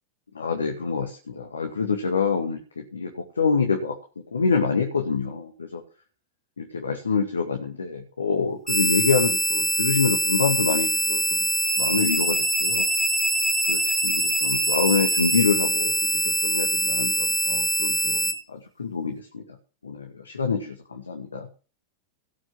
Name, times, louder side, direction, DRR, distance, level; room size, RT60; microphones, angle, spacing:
voice 1, 0.3-3.9 4.3-5.8 6.6-11.4 11.8-12.9 13.7-16.1 16.4-19.4 19.8-21.5, left 5 dB, 75° left, 3 dB, 2.1 m, -26 dB
sound 1, 8.7-18.3, right 1 dB, 5° right, 2.5 m, -23 dB
18.0 x 6.3 x 6.0 m, 0.36 s
figure-of-eight pair, 90°, 0 cm